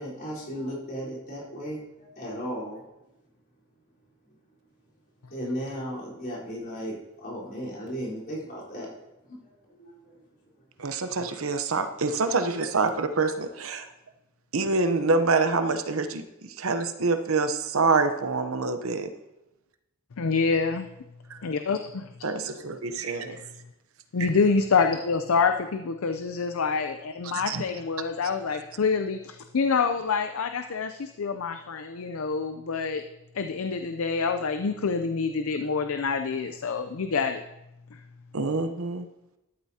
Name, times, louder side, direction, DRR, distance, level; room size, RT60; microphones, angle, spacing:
voice 1, 0.0-2.8 5.3-8.9 9.3-9.4 9.7-10.2, equal, 45° left, -7 dB, 4.0 m, -35 dB
voice 2, 10.8-13.9 14.5-19.1 21.3-21.4 22.2-23.4 24.2-24.3 27.5-27.6 38.3-39.1, right 3 dB, 75° right, 8 dB, 0.8 m, -26 dB
voice 3, 20.2-20.9 21.4-22.1 24.1-33.0 33.3-37.4 37.9-38.0, left 5 dB, 75° left, 7 dB, 0.5 m, -26 dB
13.0 x 11.5 x 2.8 m, 0.93 s
head